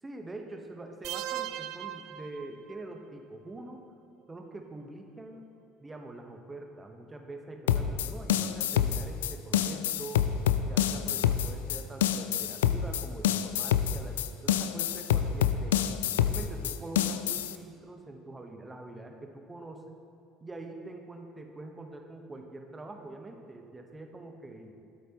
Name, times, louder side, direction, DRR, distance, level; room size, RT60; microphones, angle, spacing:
voice 1, 0.0-3.8 4.3-5.5 5.8-10.3 10.6-15.9 16.2-20.0 20.4-24.7, right 2 dB, 20° right, 3 dB, 1.2 m, -44 dB
sound 1, 1.0-3.0, right 12 dB, 65° right, 0.4 m, -38 dB
sound 2, 7.7-17.6, left 10 dB, 80° left, 0.3 m, -27 dB
13.0 x 8.1 x 3.0 m, 2.3 s
hypercardioid pair, 65°, 0 cm